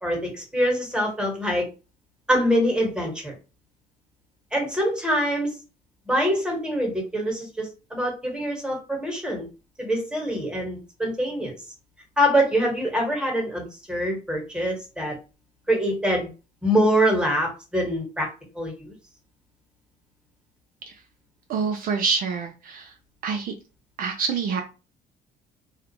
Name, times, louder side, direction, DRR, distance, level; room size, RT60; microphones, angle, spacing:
voice 1, 0.0-1.7 2.3-3.3 4.5-5.5 6.1-9.5 9.8-11.6 12.2-15.1 15.7-16.3 16.6-18.3 18.5-18.9, equal, 5° right, 0 dB, 1.2 m, -24 dB
voice 2, 21.5-22.9 23.2-23.5 24.0-24.6, right 5 dB, 60° right, 4 dB, 0.5 m, -26 dB
2.4 x 2.1 x 2.9 m, 0.31 s
cardioid pair, 110°, 17 cm